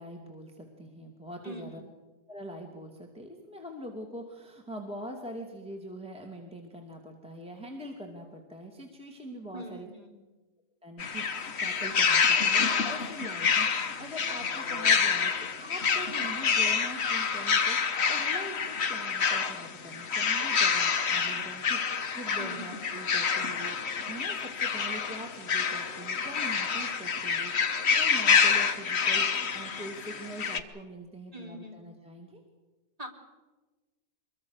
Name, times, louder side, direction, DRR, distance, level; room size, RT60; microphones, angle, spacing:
voice 1, 0.0-1.8 2.3-9.9 10.8-15.3 15.6-27.7 28.0-32.4, right 1 dB, 5° right, 2 dB, 2.4 m, -43 dB
voice 2, 1.4-1.9 9.5-10.3 22.4-23.0 31.3-31.9 33.0-33.1, right 1 dB, 25° right, 1 dB, 3.4 m, -43 dB
sound 1, 11.0-30.6, left 6 dB, 45° left, 1.3 m, -27 dB
24.5 x 22.5 x 6.6 m, 1.2 s
omnidirectional pair, 1.7 m